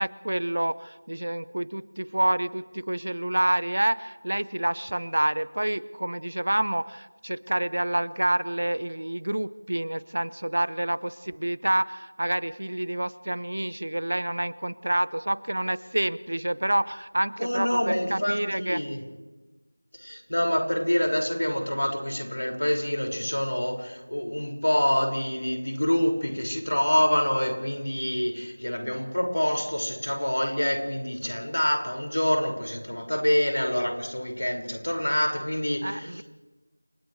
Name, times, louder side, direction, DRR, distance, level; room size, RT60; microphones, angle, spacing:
voice 1, 0.0-18.8 35.8-36.2, right 1 dB, 55° right, 18 dB, 0.8 m, -28 dB
voice 2, 17.4-19.0 19.9-36.2, equal, 80° left, 2 dB, 5.8 m, -26 dB
30.0 x 28.5 x 3.3 m, 1.2 s
figure-of-eight pair, 180°, 0 cm